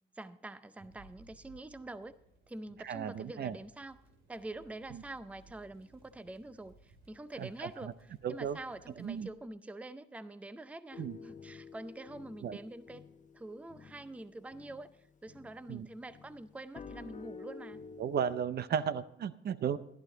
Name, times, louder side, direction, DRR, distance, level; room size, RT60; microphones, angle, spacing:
voice 1, 0.1-2.1 2.5-4.0 4.3-13.1 13.3-17.8, right 2 dB, 5° right, 14 dB, 0.5 m, -46 dB
sound 1, 0.8-9.3, right 3 dB, 80° right, 2.3 m, -62 dB
voice 2, 2.8-3.6 7.4-7.9 8.2-8.6 9.0-9.3 11.0-11.2 12.4-12.6 15.7-15.9 18.0-19.8, right 8 dB, 55° right, 15 dB, 0.6 m, -34 dB
sound 2, 10.9-15.8 16.1-18.4, left 5 dB, 40° left, 0.8 m, -50 dB
14.0 x 11.5 x 3.9 m, 0.79 s
cardioid pair, 90°, 20 cm